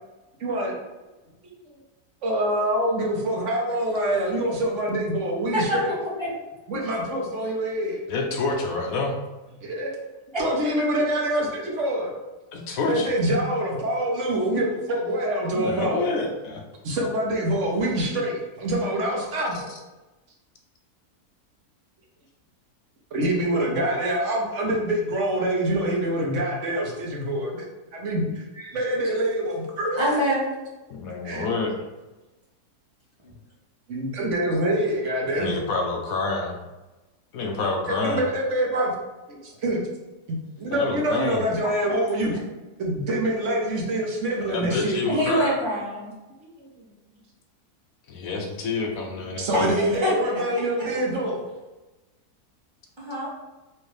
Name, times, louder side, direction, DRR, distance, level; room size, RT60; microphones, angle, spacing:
voice 1, 0.4-0.8 1.4-1.6 2.2-5.9 6.7-8.0 9.6-9.9 10.4-12.1 12.9-16.1 16.8-19.7 23.1-27.6 27.9-28.4 28.7-30.1 31.2-31.5 33.9-35.6 38.1-38.9 39.3-39.8 40.3-42.3 42.8-45.0 46.4-46.7 49.1-51.5, right 1 dB, 55° right, -1 dB, 1.1 m, -25 dB
voice 2, 8.1-9.2 12.5-13.1 15.5-16.6 30.9-31.8 35.4-36.6 37.3-38.2 40.7-41.4 44.5-45.5 48.1-49.7, left 3 dB, 70° left, 1 dB, 1.0 m, -27 dB
voice 3, 29.9-30.4 45.0-46.1 49.5-50.3 50.8-50.9 53.0-53.3, equal, 20° right, -6 dB, 1.0 m, -26 dB
4.4 x 2.7 x 3.2 m, 1.1 s
omnidirectional pair, 1.7 m